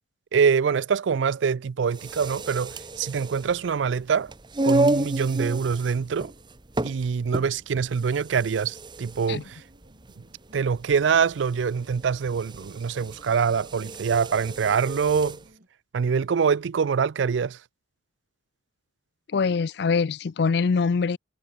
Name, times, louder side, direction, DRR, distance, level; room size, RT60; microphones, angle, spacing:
voice 1, 0.3-4.3 4.6-6.3 6.8-9.6 10.5-15.4 15.9-17.6, right 6 dB, 80° right, 0.4 m, -24 dB
sound 1, 1.9-15.4, right 2 dB, 25° right, 1.0 m, -31 dB
sound 2, 9.0-15.7, equal, 50° right, 7.9 m, -59 dB
voice 2, 19.3-21.2, left 5 dB, 65° left, 0.4 m, -23 dB
head